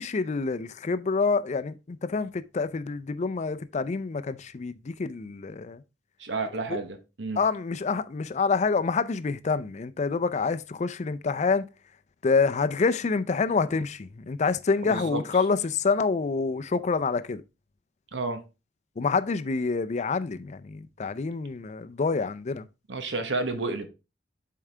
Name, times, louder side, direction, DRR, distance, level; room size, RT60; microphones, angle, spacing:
voice 1, 0.0-5.8 6.7-6.8 7.4-11.6 12.2-17.4 19.0-22.7, left 4 dB, 40° left, 0.4 m, -27 dB
voice 2, 6.2-7.4 14.8-15.2 18.1-18.4 22.9-23.9, right 3 dB, 90° right, 1.1 m, -31 dB
7.2 x 4.7 x 3.2 m
head